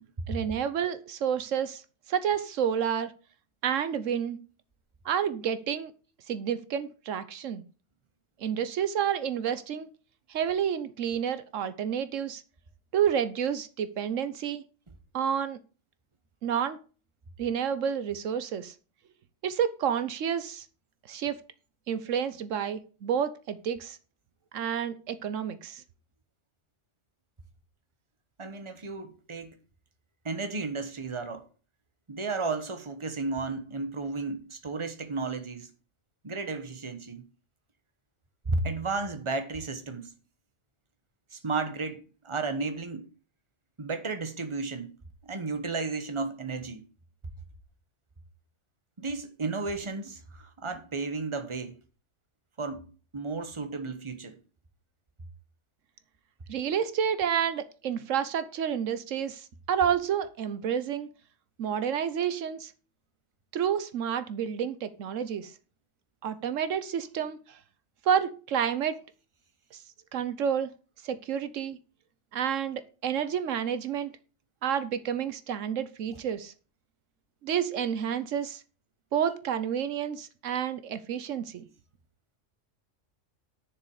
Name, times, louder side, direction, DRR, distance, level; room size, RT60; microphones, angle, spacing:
voice 1, 0.3-1.8 2.1-3.1 3.6-4.4 5.0-5.9 6.3-7.6 8.4-9.9 10.3-12.4 12.9-14.6 15.1-15.6 16.4-16.8 17.4-18.7 19.4-20.7 21.1-21.4 21.9-24.0 24.5-25.8 56.5-61.1 61.6-62.7 63.5-65.5 66.2-67.6 68.0-69.0 69.7-69.8 70.1-70.7 71.0-71.8 72.3-74.1 74.6-76.5 77.4-78.6 79.1-81.6, right 8 dB, 80° right, 1.2 m, -29 dB
voice 2, 28.4-29.6 30.2-31.5 32.1-35.7 36.2-37.3 38.5-40.1 41.3-43.1 43.8-45.0 45.2-46.8 49.0-51.8 52.6-52.9 53.1-54.4, right 3 dB, 25° right, 1.2 m, -33 dB
10.0 x 6.8 x 4.8 m
omnidirectional pair, 1.3 m